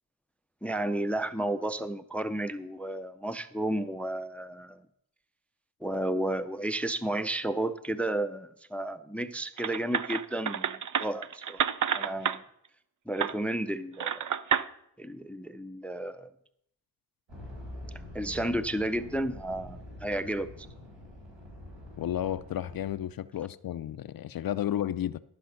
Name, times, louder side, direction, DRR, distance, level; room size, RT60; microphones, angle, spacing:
voice 1, 0.6-4.8 5.8-11.6 11.9-12.4 13.1-14.3 15.0-16.3 18.1-20.7, right 1 dB, 5° left, 0.5 m, -32 dB
sound 1, 9.6-12.4 13.2-13.3 14.0-14.7, right 8 dB, 45° right, 0.5 m, -29 dB
sound 2, 17.3-22.9, left 1 dB, 75° right, 4.9 m, -45 dB
voice 2, 22.0-25.2, left 11 dB, 55° left, 0.5 m, -32 dB
13.0 x 5.6 x 5.7 m
cardioid pair, 55°, 44 cm